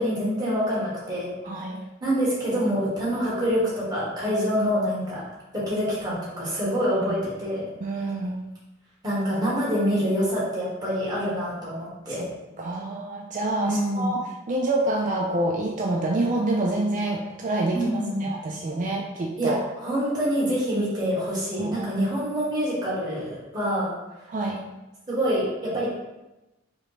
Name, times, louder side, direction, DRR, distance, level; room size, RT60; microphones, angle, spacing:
voice 1, 0.0-1.3 2.0-5.2 5.5-7.7 9.0-12.3 13.6-14.1 17.7-18.3 19.4-23.9 25.1-25.9, equal, 20° right, -7 dB, 1.3 m, -26 dB
voice 2, 1.4-1.8 7.8-8.4 12.1-12.3 12.6-19.6 21.6-22.1 24.3-24.6, right 2 dB, 40° right, 0 dB, 0.3 m, -27 dB
4.9 x 2.2 x 3.2 m, 1.0 s
head